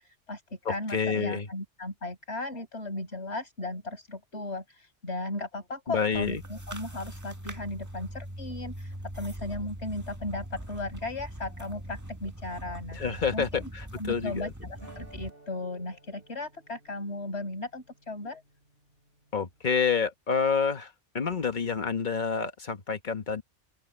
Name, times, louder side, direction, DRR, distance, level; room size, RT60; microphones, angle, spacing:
voice 1, 0.0-13.0 13.3-13.4 14.0-18.4, left 2 dB, 70° left, 6.0 m, -36 dB
voice 2, 0.6-1.5 5.9-6.4 12.9-14.5 19.3-23.4, left 6 dB, 40° left, 1.4 m, -28 dB
sound 1, 6.1-15.3, right 1 dB, 15° right, 1.6 m, -41 dB
sound 2, 14.8-19.6, right 1 dB, 55° right, 8.5 m, -56 dB
open air
omnidirectional pair, 1.2 m